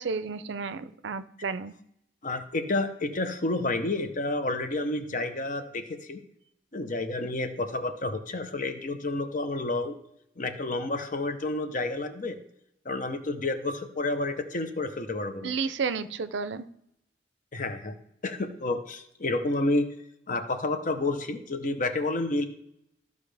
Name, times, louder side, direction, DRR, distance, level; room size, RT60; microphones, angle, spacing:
voice 1, 0.0-1.7 15.4-16.6, right 5 dB, 70° right, 13 dB, 0.5 m, -32 dB
voice 2, 2.2-6.2 6.7-10.0 10.4-12.4 12.8-15.5 17.5-18.0 18.2-19.9 20.3-22.5, left 2 dB, 45° left, 8 dB, 0.8 m, -30 dB
13.5 x 5.2 x 3.4 m, 0.78 s
head